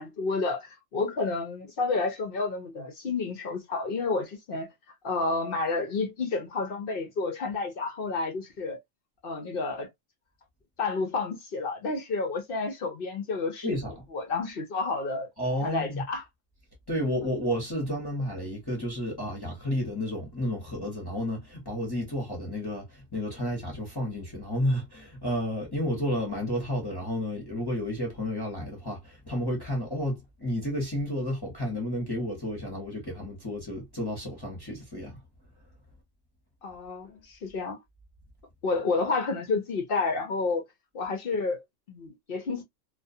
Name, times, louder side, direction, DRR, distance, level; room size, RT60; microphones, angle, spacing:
voice 1, 0.0-4.7 5.0-8.8 9.2-9.9 10.8-13.8 14.1-15.3 15.6-16.2 36.6-37.8 38.6-40.6 40.9-42.6, left 3 dB, 60° left, 0.6 m, -30 dB
voice 2, 15.4-16.0 16.9-35.2, equal, 20° left, 0.8 m, -31 dB
2.3 x 2.3 x 2.5 m
omnidirectional pair, 1.4 m